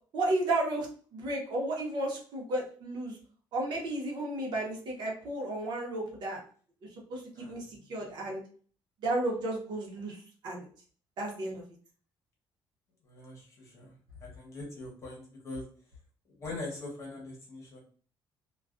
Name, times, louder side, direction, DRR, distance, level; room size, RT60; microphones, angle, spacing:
voice 1, 0.1-3.2 3.5-6.4 7.1-8.4 9.0-10.7 11.2-11.6, right 2 dB, 55° right, -2 dB, 0.8 m, -33 dB
voice 2, 7.4-7.8 13.0-14.0 14.2-15.7 16.4-17.8, left 2 dB, 35° left, -2 dB, 0.9 m, -42 dB
2.3 x 2.2 x 2.4 m, 0.44 s
cardioid pair, 180°, 9 cm